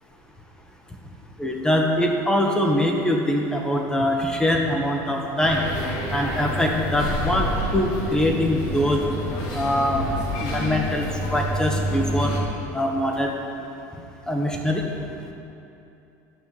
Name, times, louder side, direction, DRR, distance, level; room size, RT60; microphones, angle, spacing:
voice 1, 1.4-5.6 6.1-9.0 9.5-10.1 10.4-12.3 12.7-13.3 14.3-14.8, left 1 dB, 10° left, 1 dB, 1.4 m, -23 dB
sound 1, 5.4-12.4, equal, 60° left, 2.4 m, -28 dB
11.5 x 5.7 x 8.4 m, 2.8 s
supercardioid pair, 125°, 8 cm